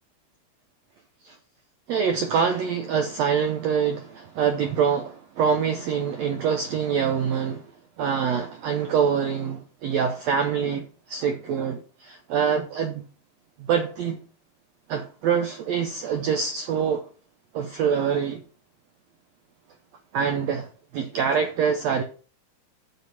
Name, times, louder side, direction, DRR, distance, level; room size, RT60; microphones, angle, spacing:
voice 1, 1.9-7.7 8.0-13.0 13.6-14.2 14.9-17.1 17.5-18.4 20.1-22.0, right 7 dB, 75° right, 1.5 m, -25 dB
6.9 x 6.2 x 5.7 m
omnidirectional pair, 3.9 m